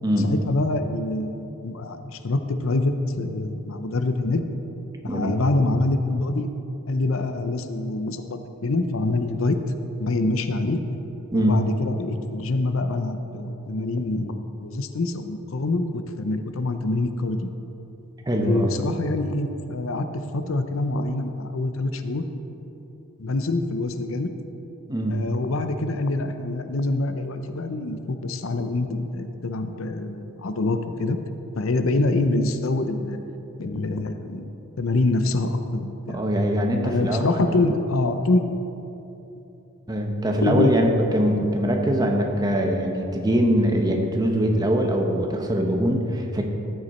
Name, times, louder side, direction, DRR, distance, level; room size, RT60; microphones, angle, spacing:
voice 1, 0.2-4.4 5.0-6.5 6.9-9.6 10.0-10.8 11.3-17.5 18.3-20.1 20.3-22.2 23.2-24.3 25.1-31.2 31.6-33.2 33.6-34.5 34.8-36.2 36.8-38.4 40.4-40.8, left 2 dB, 75° left, 8 dB, 0.6 m, -25 dB
voice 2, 5.0-5.4 11.3-11.5 18.3-18.7 24.9-25.2 36.1-37.2 39.9-40.9 41.1-46.4, equal, 20° right, 2 dB, 0.9 m, -22 dB
13.5 x 8.0 x 4.3 m, 3.0 s
head